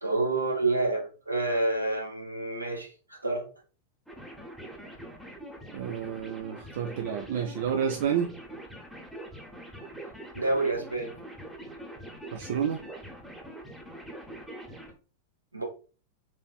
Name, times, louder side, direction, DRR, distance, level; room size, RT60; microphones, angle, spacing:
voice 1, 0.0-3.5 10.3-11.1 15.5-15.6, right 2 dB, 85° right, 0.9 m, -28 dB
sound 1, 4.1-14.9, right 1 dB, ahead, 0.8 m, -43 dB
voice 2, 5.7-8.3 12.3-12.8, right 8 dB, 55° right, 0.3 m, -30 dB
4.1 x 2.5 x 2.2 m
figure-of-eight pair, 90°, 0 cm